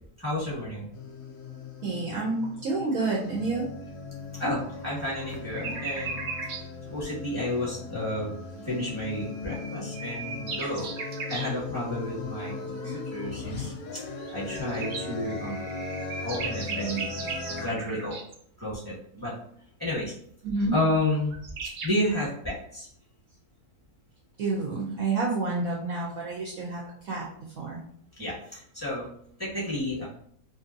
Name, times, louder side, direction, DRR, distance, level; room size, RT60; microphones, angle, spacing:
voice 1, 0.2-0.9 4.4-6.6 6.9-10.9 11.3-14.0 14.3-15.6 16.2-17.1 17.5-18.2 18.6-19.4 19.8-20.1 20.7-22.9 28.2-29.1 29.4-30.0, left 1 dB, 10° right, -9 dB, 1.2 m, -31 dB
sound 1, 0.9-17.7, left 4 dB, 70° left, 0.9 m, -38 dB
voice 2, 1.8-3.7 12.8-12.9 20.4-20.7 24.4-27.2 27.6-27.8, right 3 dB, 70° right, -3 dB, 0.9 m, -29 dB
sound 2, 5.3-6.7 9.2-11.5 14.2-18.4 21.0-21.1 21.3-21.9, right 4 dB, 85° right, 0.6 m, -37 dB
2.6 x 2.5 x 2.5 m, 0.66 s
omnidirectional pair, 1.8 m